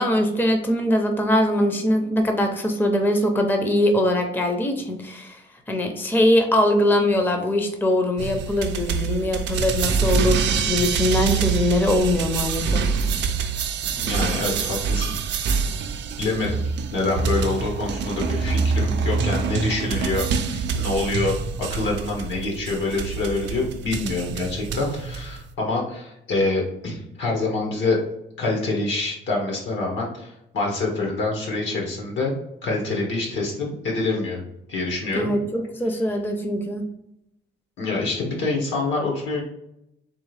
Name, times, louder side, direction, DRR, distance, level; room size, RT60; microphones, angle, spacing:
voice 1, 0.0-5.4 5.7-12.9 35.1-36.8, left 1 dB, 10° left, 4 dB, 0.6 m, -22 dB
sound 1, 8.2-25.5, right 5 dB, 70° right, 0.5 m, -25 dB
voice 2, 13.9-15.2 16.2-16.6 16.9-21.4 21.7-28.0 28.4-32.3 32.6-34.4 34.7-35.3 37.8-39.4, left 3 dB, 80° left, -1 dB, 1.6 m, -26 dB
3.6 x 3.4 x 3.3 m, 0.81 s
cardioid pair, 110°, 19 cm